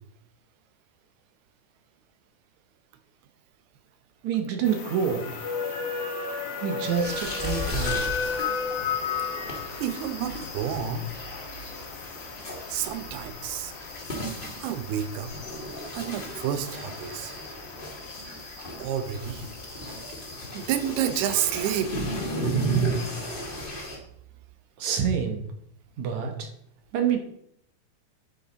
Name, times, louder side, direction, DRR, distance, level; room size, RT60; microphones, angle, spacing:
voice 1, 4.2-5.5 6.6-8.1 14.4-14.5 24.8-25.5 26.0-26.5 26.9-27.2, right 7 dB, 65° right, 5 dB, 2.0 m, -27 dB
sound 1, 4.6-22.0, left 5 dB, 60° left, 2.6 m, -36 dB
sound 2, 6.9-24.0, right 1 dB, 35° left, 0.8 m, -34 dB
voice 2, 9.8-11.1 12.7-13.7 14.6-15.3 15.9-17.4 18.8-19.5 20.5-21.9, right 9 dB, 90° right, 10 dB, 2.9 m, -29 dB
9.7 x 8.7 x 4.0 m, 0.70 s
omnidirectional pair, 4.4 m